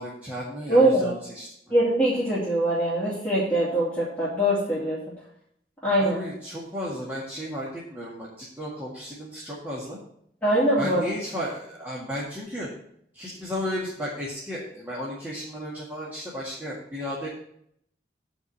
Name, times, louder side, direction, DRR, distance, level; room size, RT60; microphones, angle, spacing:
voice 1, 0.0-1.5 6.0-10.0 10.8-12.7 13.1-17.3, equal, 10° right, -8 dB, 1.9 m, -34 dB
voice 2, 0.7-1.1 1.7-5.0 5.8-6.2 10.4-11.0, right 1 dB, 10° left, -10 dB, 2.6 m, -22 dB
9.3 x 4.9 x 7.3 m, 0.71 s
head